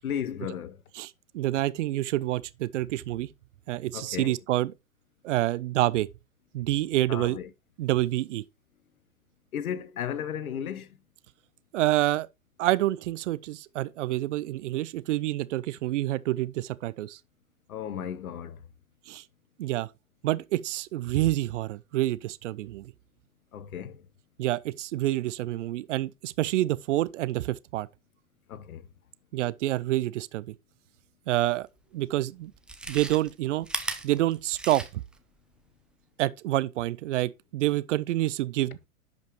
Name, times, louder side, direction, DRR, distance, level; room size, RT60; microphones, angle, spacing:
voice 1, 0.0-0.8 3.9-4.3 7.1-7.5 9.5-11.0 17.7-18.6 23.5-24.1 28.5-28.9, left 9 dB, 70° left, 1.0 m, -34 dB
voice 2, 1.0-3.3 3.7-4.7 5.2-6.1 6.5-7.4 7.8-8.4 11.7-12.3 12.6-17.2 19.1-19.2 19.6-19.9 20.2-22.9 24.4-27.9 29.3-30.5 31.3-31.7 31.9-32.5 32.9-33.7 34.0-35.0 36.2-38.9, right 15 dB, 55° right, 0.6 m, -27 dB
Chewing mastication, 31.8-31.9 32.5-35.2 35.5-35.6, right 2 dB, ahead, 0.4 m, -36 dB
10.5 x 5.2 x 3.1 m
hypercardioid pair, 105°, 44 cm